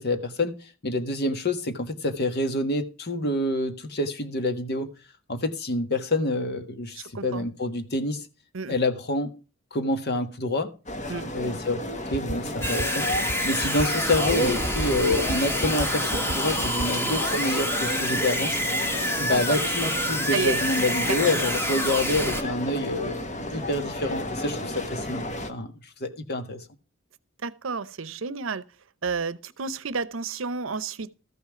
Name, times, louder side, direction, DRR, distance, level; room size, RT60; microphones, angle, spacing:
voice 1, 0.0-4.9 5.3-8.3 8.7-9.3 9.7-10.7 11.3-13.1 13.4-18.5 19.2-23.2 23.5-25.7 26.0-26.6, left 2 dB, 50° left, 1.5 m, -27 dB
voice 2, 7.0-7.5 8.5-8.7 11.1-11.3 20.3-20.6 21.0-21.2 27.4-28.6 29.0-31.1, right 5 dB, 70° right, 0.8 m, -31 dB
sound 1, 10.9-25.5, left 1 dB, 35° left, 1.3 m, -32 dB
sound 2, 12.1-12.3 12.6-12.8 13.1-13.3 13.6-13.8 14.1-14.3 14.6-14.8 15.1-15.3 15.6-15.8 16.1-16.3 16.6-16.8, right 2 dB, 30° right, 0.7 m, -31 dB
sound 3, 12.6-22.4, equal, 10° left, 1.6 m, -28 dB
14.0 x 5.7 x 7.1 m
head